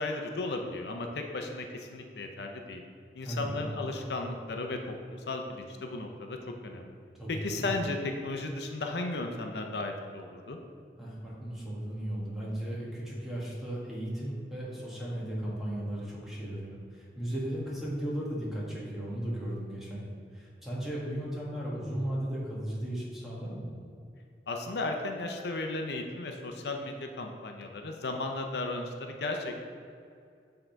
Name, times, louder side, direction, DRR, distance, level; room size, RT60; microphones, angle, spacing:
voice 1, 0.0-1.7 1.9-2.8 3.1-6.4 6.6-6.9 7.3-10.6 24.5-29.5, left 2 dB, 75° left, 3 dB, 0.6 m, -35 dB
voice 2, 3.2-3.7 7.1-7.7 11.0-23.6, right 1 dB, ahead, -7 dB, 1.6 m, -36 dB
8.0 x 3.8 x 4.5 m, 2.4 s
head